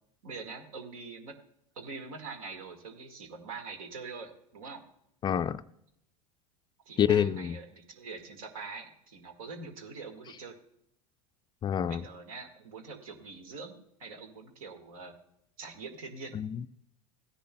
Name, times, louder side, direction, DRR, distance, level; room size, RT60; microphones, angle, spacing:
voice 1, 0.2-1.3 1.8-4.8 6.9-10.6 11.9-15.1 15.6-16.4, right 4 dB, 75° right, 1.8 m, -44 dB
voice 2, 5.2-5.6 7.0-7.6 11.6-12.0 16.3-16.7, left 9 dB, 25° left, 0.3 m, -27 dB
16.5 x 10.0 x 2.3 m
hypercardioid pair, 90°, 18 cm